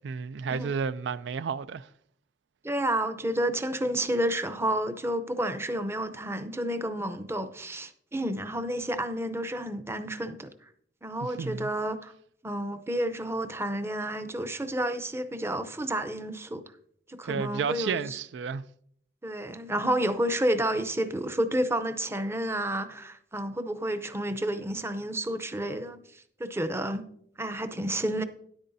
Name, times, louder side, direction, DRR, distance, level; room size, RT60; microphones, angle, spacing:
voice 1, 0.0-1.9 11.4-11.7 17.2-18.6, right 6 dB, 70° right, 0.3 m, -31 dB
voice 2, 2.6-10.5 11.0-12.1 12.4-16.6 17.1-18.2 19.2-27.0 27.4-28.2, right 1 dB, 15° right, 0.6 m, -30 dB
12.5 x 10.5 x 2.7 m
head